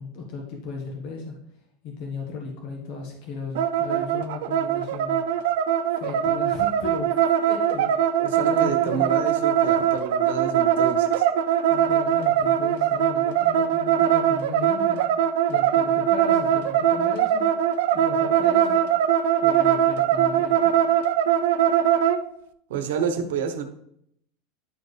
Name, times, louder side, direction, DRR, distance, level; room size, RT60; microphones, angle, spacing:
voice 1, 0.0-1.4 1.8-5.2 5.9-7.1 7.4-7.9 8.4-9.1 11.7-15.0 15.5-17.5 17.9-18.8 19.4-20.7, left 4 dB, 50° left, 0 dB, 1.3 m, -36 dB
sound 1, 3.6-22.2, right 10 dB, 70° right, 0.4 m, -21 dB
voice 2, 8.2-11.2 22.7-23.7, right 7 dB, 85° right, 8 dB, 0.9 m, -29 dB
10.5 x 4.4 x 3.3 m, 0.72 s
supercardioid pair, 165°, 0 cm